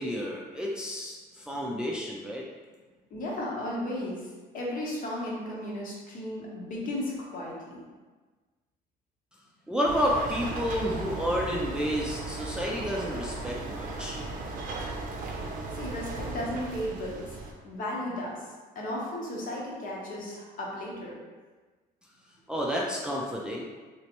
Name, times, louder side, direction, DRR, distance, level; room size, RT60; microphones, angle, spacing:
voice 1, 0.0-2.4 9.7-14.2 22.5-23.6, equal, 5° right, -3 dB, 0.4 m, -30 dB
voice 2, 3.1-4.3 4.5-7.8 15.7-18.5 18.7-21.2, left 1 dB, 55° left, -3 dB, 1.0 m, -35 dB
sound 1, 9.9-17.5, right 3 dB, 55° right, 0.6 m, -36 dB
3.1 x 3.0 x 2.9 m, 1.3 s
cardioid pair, 110°, 17 cm